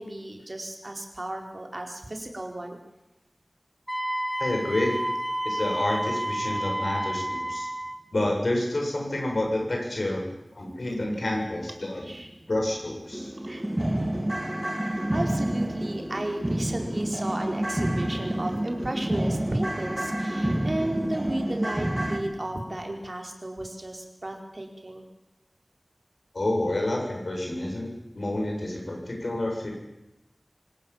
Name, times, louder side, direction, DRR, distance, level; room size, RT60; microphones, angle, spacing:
voice 1, 0.0-2.8 12.0-12.3 13.4-13.7 14.8-25.0, right 1 dB, 55° right, 3 dB, 4.6 m, -34 dB
Wind instrument woodwind instrument, 3.9-8.0, right 1 dB, 5° right, 4.2 m, -30 dB
voice 2, 4.4-5.0 5.4-7.7 8.1-10.2 10.5-12.1 12.5-13.3 26.3-29.7, left 1 dB, 85° left, 0 dB, 7.7 m, -28 dB
sound 1, 12.2-12.3 12.7-12.8 13.1-22.2, right 1 dB, 25° right, 4.4 m, -29 dB
25.5 x 18.0 x 7.5 m, 0.92 s
wide cardioid pair, 45°, 0 cm